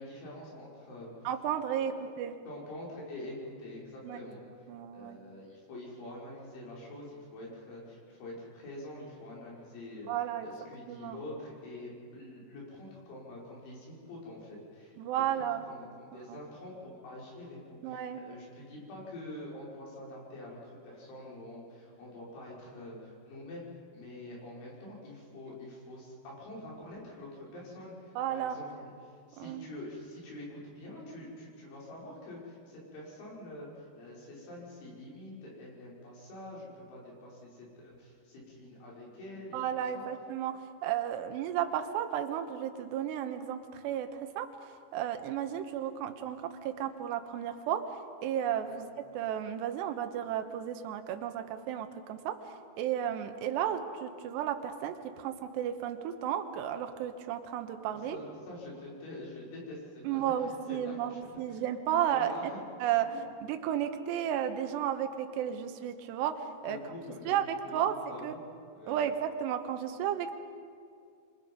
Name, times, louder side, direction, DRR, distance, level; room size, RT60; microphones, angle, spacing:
voice 1, 0.0-1.1 1.7-2.1 2.5-4.4 4.9-10.1 10.4-14.9 15.4-23.7 23.9-28.9 29.3-40.1 48.7-48.8 58.1-60.3 60.7-61.6 61.9-62.6 63.1-63.2 66.7-67.3 67.6-68.5 68.7-69.1, left 1 dB, 75° left, -4 dB, 8.0 m, -46 dB
voice 2, 1.2-2.4 4.0-4.2 4.7-5.2 10.1-10.5 10.9-11.2 15.0-15.7 16.1-16.4 17.8-18.2 28.2-28.6 29.4-29.7 39.5-44.5 44.9-52.5 52.8-58.2 60.0-62.5 62.8-63.1 63.4-66.8 67.3-68.0 68.2-68.3 68.9-70.4, right 10 dB, 70° right, 7 dB, 3.0 m, -33 dB
27.0 x 24.5 x 5.5 m, 2.3 s
omnidirectional pair, 5.5 m